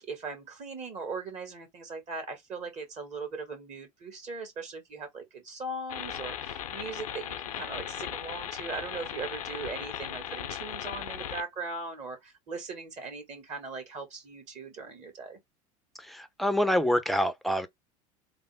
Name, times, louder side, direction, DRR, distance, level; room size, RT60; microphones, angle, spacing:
voice 1, 0.0-15.4, right 4 dB, 40° right, 2.1 m, -39 dB
sound 1, 5.9-11.4, left 10 dB, 90° left, 0.6 m, -37 dB
voice 2, 16.1-17.7, equal, ahead, 0.6 m, -26 dB
3.4 x 2.1 x 3.4 m
hypercardioid pair, 85°, 18 cm